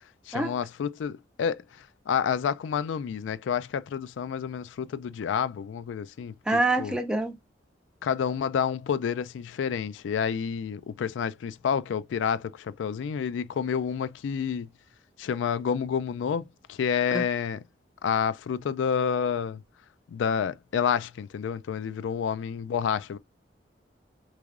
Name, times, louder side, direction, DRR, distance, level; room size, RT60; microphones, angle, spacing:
voice 1, 0.3-1.6 2.1-7.0 8.0-14.7 15.2-17.6 18.0-19.6 20.1-23.2, left 7 dB, 90° left, 0.3 m, -29 dB
voice 2, 6.5-7.4 17.1-17.3, right 2 dB, 5° right, 0.3 m, -26 dB
3.6 x 3.2 x 2.4 m
head